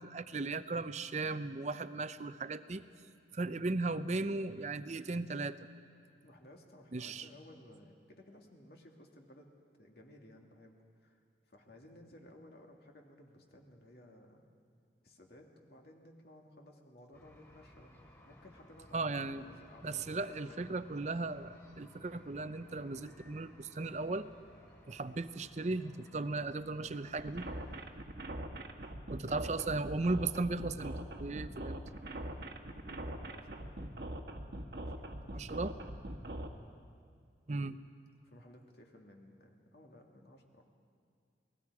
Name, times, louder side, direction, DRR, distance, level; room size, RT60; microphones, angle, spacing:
voice 1, 0.0-2.8 3.3-5.6 6.9-7.3 18.9-19.4 19.8-24.3 24.9-27.5 29.1-31.8 35.3-35.7 37.5-37.8, right 3 dB, 40° right, 12 dB, 0.6 m, -36 dB
voice 2, 6.2-9.5 9.8-11.2 11.5-14.6 15.0-17.9 18.2-20.7 29.0-29.9 32.6-33.9 34.7-35.5 36.5-36.7 38.1-40.6, left 1 dB, 60° left, 1 dB, 2.3 m, -57 dB
sound 1, 17.1-27.9, left 1 dB, 15° left, 3.8 m, -60 dB
sound 2, 27.2-36.5, right 1 dB, 60° right, 1.4 m, -42 dB
29.0 x 20.5 x 4.9 m, 2.2 s
head